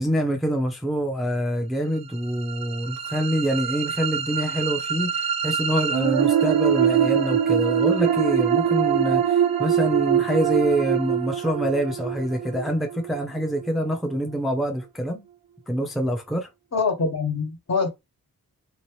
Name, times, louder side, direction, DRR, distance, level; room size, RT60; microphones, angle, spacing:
voice 1, 0.0-15.3 15.7-16.5, equal, ahead, 0.6 m, -26 dB
sound 1, 2.1-14.1, right 8 dB, 85° right, 0.5 m, -24 dB
voice 2, 16.7-17.9, left 4 dB, 50° left, 1.3 m, -24 dB
3.4 x 2.9 x 3.1 m
wide cardioid pair, 110°, 35 cm